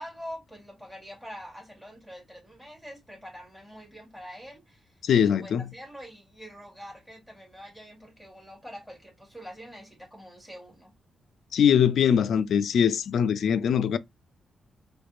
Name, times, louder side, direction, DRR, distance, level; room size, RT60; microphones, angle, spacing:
voice 1, 0.0-10.9, equal, 5° right, 3.0 m, -45 dB
voice 2, 5.0-5.7 11.5-14.0, left 8 dB, 70° left, 0.4 m, -22 dB
4.2 x 3.2 x 2.4 m
cardioid pair, 115°, 0 cm